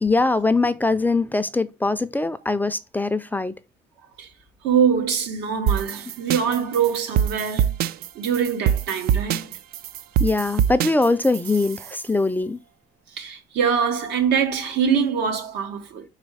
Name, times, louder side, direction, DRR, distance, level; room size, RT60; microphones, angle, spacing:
voice 1, 0.0-3.5 10.2-12.6, left 3 dB, 10° left, 0.4 m, -22 dB
voice 2, 4.6-7.7 8.1-9.5 13.1-16.0, right 7 dB, 85° right, 1.4 m, -23 dB
sound 1, 5.7-12.0, right 9 dB, 65° right, 0.4 m, -24 dB
4.9 x 4.1 x 4.7 m
cardioid pair, 110°, 17 cm